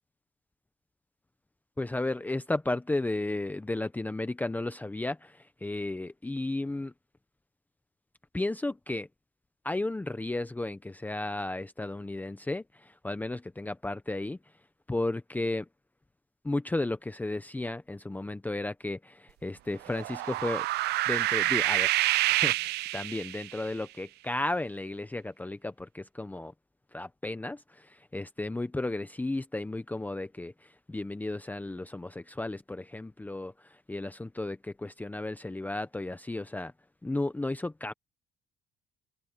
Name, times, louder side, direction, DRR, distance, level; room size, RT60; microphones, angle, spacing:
voice 1, 1.8-6.9 8.3-9.1 9.6-14.4 14.9-15.7 16.4-20.7 21.1-22.0 22.3-26.5 26.9-36.7 37.0-37.9, left 2 dB, 10° left, 0.8 m, -34 dB
sound 1, 19.8-23.6, right 17 dB, 75° right, 0.6 m, -27 dB
open air
cardioid pair, 110°, 17 cm